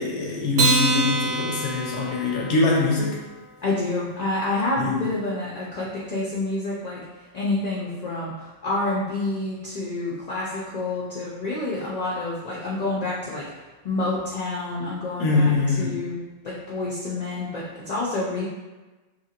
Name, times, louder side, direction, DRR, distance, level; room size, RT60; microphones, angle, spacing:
voice 1, 0.0-3.2 4.8-5.0 15.2-16.0, left 3 dB, 85° left, -2 dB, 0.9 m, -23 dB
Acoustic guitar, 0.5-3.2, right 3 dB, 90° right, 1.0 m, -25 dB
voice 2, 3.6-13.4 13.8-15.5 15.8-16.2 16.4-18.4, left 2 dB, 55° left, -5 dB, 0.4 m, -28 dB
2.8 x 2.5 x 2.8 m, 1.2 s
omnidirectional pair, 1.2 m